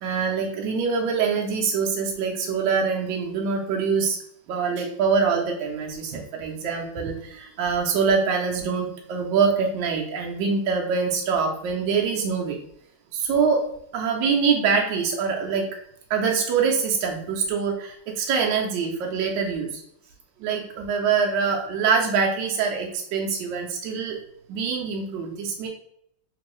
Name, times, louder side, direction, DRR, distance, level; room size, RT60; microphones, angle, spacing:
voice 1, 0.0-4.2 4.5-12.6 13.1-13.6 13.9-15.6 16.1-19.8 20.4-24.2 24.5-25.7, right 5 dB, 75° right, 0 dB, 1.1 m, -24 dB
3.5 x 3.0 x 2.9 m, 0.71 s
omnidirectional pair, 2.3 m